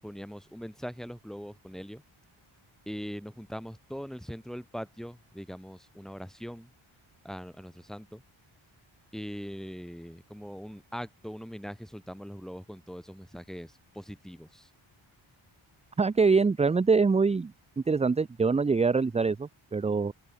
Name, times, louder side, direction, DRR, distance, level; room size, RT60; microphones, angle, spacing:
voice 1, 0.0-2.0 2.8-6.7 7.2-8.2 9.1-14.7, equal, ahead, 6.8 m, -41 dB
voice 2, 16.0-17.5 17.9-20.1, right 4 dB, 15° right, 0.3 m, -24 dB
open air
wide cardioid pair, 85°, 49 cm